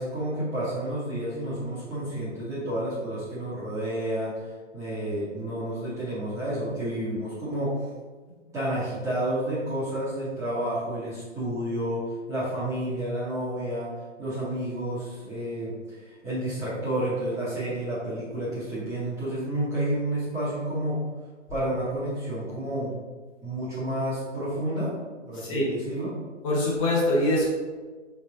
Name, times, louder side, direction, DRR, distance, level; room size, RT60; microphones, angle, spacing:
voice 1, 0.0-4.3 4.7-7.9 8.5-12.0 12.3-13.9 14.2-21.0 21.5-22.9 23.4-24.9 25.2-26.1, right 1 dB, 10° right, -12 dB, 0.9 m, -30 dB
voice 2, 25.3-25.7 26.4-27.5, left 1 dB, 25° left, -5 dB, 1.1 m, -24 dB
4.2 x 3.4 x 3.7 m, 1.4 s
figure-of-eight pair, 135°, 37 cm